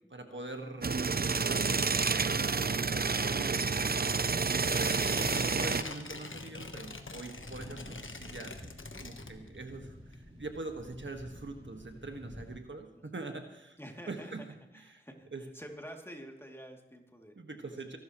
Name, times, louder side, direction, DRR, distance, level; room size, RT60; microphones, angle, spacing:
voice 1, 0.1-1.0 1.4-3.9 4.4-13.8 14.1-14.5 14.7-15.0 15.3-15.4 17.3-18.0, right 2 dB, 70° right, 4 dB, 1.6 m, -43 dB
sound 1, 0.8-5.8, right 4 dB, 50° right, 0.6 m, -29 dB
Tearing, 4.7-9.8 10.1-10.2, left 3 dB, 80° left, 1.2 m, -44 dB
sound 2, 7.4-12.6, equal, 30° right, 3.7 m, -49 dB
voice 2, 13.8-14.5 14.7-17.8, equal, 10° left, 1 dB, 2.7 m, -49 dB
24.0 x 12.5 x 3.1 m, 0.89 s
wide cardioid pair, 40°, 20 cm